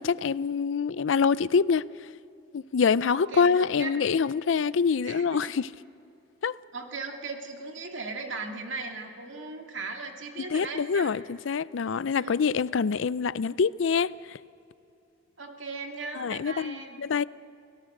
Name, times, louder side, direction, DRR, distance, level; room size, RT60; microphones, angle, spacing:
voice 1, 0.0-1.8 2.5-5.6 6.4-6.5 10.5-14.4 16.2-17.2, left 5 dB, 75° left, 0.5 m, -25 dB
voice 2, 3.1-3.9 5.0-5.5 6.7-11.1 12.2-12.4 15.4-17.0, right 3 dB, 80° right, 2.2 m, -38 dB
29.5 x 17.5 x 6.6 m
head